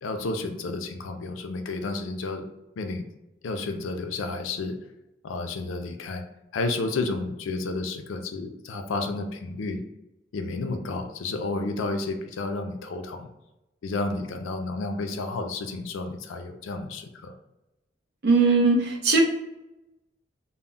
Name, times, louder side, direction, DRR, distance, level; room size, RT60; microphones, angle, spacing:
voice 1, 0.0-2.4 2.8-3.0 3.4-4.7 5.2-6.2 6.5-9.8 10.3-13.3 13.8-17.3, left 3 dB, 85° left, 6 dB, 0.4 m, -31 dB
voice 2, 18.2-19.2, right 4 dB, 55° right, 0 dB, 0.5 m, -19 dB
2.2 x 2.0 x 3.6 m, 0.96 s
head